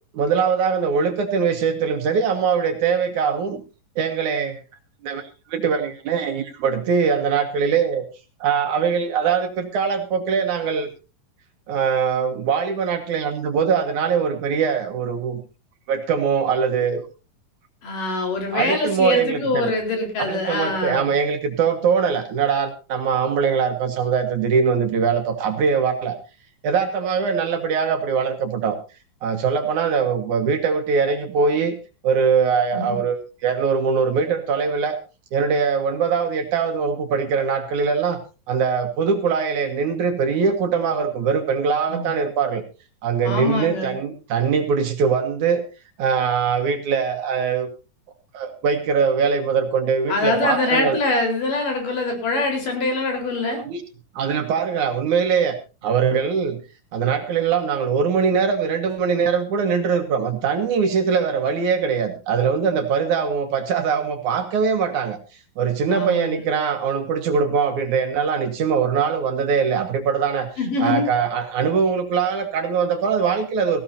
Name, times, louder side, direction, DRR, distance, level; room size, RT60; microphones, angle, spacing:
voice 1, 0.1-3.6 4.0-4.6 5.0-8.0 8.4-10.9 11.7-15.4 15.9-17.0 18.5-19.7 20.2-26.2 26.6-28.8 29.2-31.8 32.0-35.0 35.3-38.2 38.5-42.6 43.0-45.6 46.0-47.7 48.3-51.0 53.6-53.8 54.2-55.6 55.8-56.6 56.9-65.2 65.6-70.5 70.8-73.8, right 6 dB, 60° right, 6 dB, 2.6 m, -22 dB
voice 2, 17.8-21.1 32.7-33.0 41.9-42.2 43.2-43.9 50.1-53.6 65.9-66.5 70.6-71.1, left 3 dB, 60° left, 3 dB, 5.6 m, -24 dB
17.5 x 16.5 x 2.7 m, 0.31 s
omnidirectional pair, 4.2 m